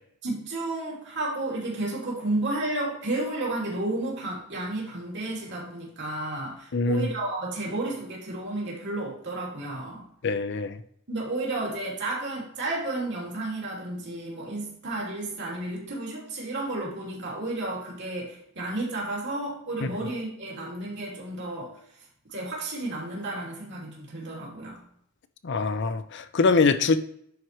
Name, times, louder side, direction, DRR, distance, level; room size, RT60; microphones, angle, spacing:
voice 1, 0.2-10.1 11.1-21.8 22.3-24.8, right 2 dB, 55° right, -4 dB, 2.9 m, -32 dB
voice 2, 6.7-7.1 10.2-10.8 19.8-19.9 25.4-27.0, left 4 dB, 55° left, 12 dB, 0.6 m, -23 dB
10.5 x 4.7 x 3.0 m, 0.69 s
head